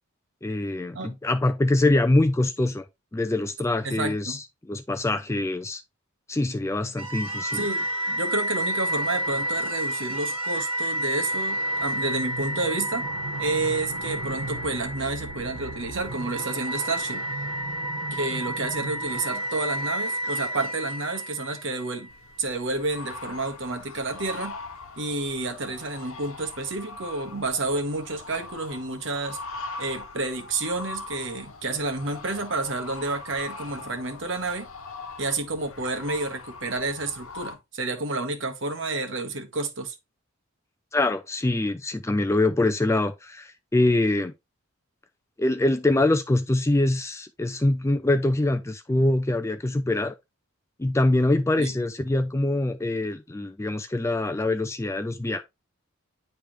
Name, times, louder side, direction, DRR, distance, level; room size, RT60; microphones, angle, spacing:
voice 1, 0.4-2.8 3.1-5.8 6.3-7.7 40.9-44.3 45.4-50.2 50.8-55.4, left 2 dB, 15° left, 0.3 m, -24 dB
voice 2, 3.8-4.4 7.5-13.1 13.4-17.2 18.1-22.1 22.4-24.5 25.0-29.4 29.8-34.7 35.2-39.9 51.6-51.7, right 3 dB, 55° right, 1.3 m, -30 dB
sound 1, 7.0-22.1, right 1 dB, 85° right, 1.6 m, -30 dB
sound 2, 22.1-37.5, left 3 dB, 75° left, 1.0 m, -41 dB
10.0 x 3.4 x 3.1 m
head